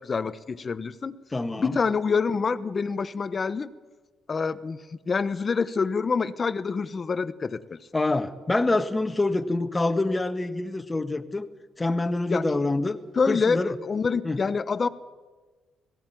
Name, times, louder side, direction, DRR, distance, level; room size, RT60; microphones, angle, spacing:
voice 1, 0.0-1.2 1.6-3.7 4.3-7.8 12.3-12.4 13.2-14.9, left 5 dB, 35° left, 14 dB, 1.0 m, -26 dB
voice 2, 1.3-1.8 7.9-11.5 11.8-13.0 13.3-13.7 14.2-14.4, left 2 dB, 20° left, 8 dB, 1.5 m, -26 dB
18.5 x 16.0 x 9.2 m, 1.3 s
cardioid pair, 90°, 0 cm